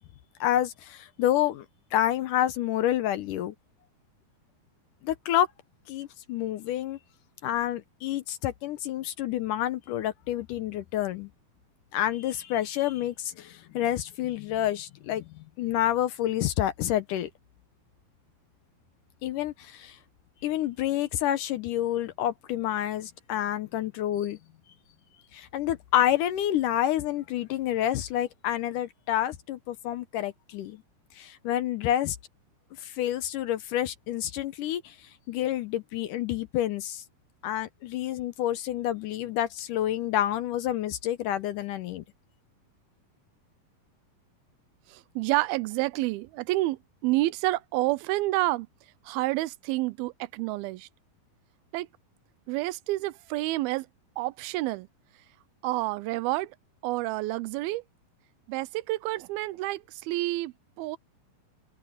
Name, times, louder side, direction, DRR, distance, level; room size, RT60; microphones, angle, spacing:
voice 1, 0.4-1.7 1.9-3.5 5.0-5.5 5.9-7.0 7.4-11.3 11.9-15.3 15.6-17.3 19.2-20.0 20.4-24.4 25.3-30.8 31.2-32.2 32.8-37.0 37.4-42.0, left 12 dB, 75° left, 2.1 m, -28 dB
voice 2, 44.9-48.7 49.1-50.9 51.7-51.9 52.5-53.9 54.2-54.9 55.6-56.5 56.8-57.8 58.5-61.0, right 18 dB, 90° right, 2.5 m, -29 dB
open air
omnidirectional pair, 4.3 m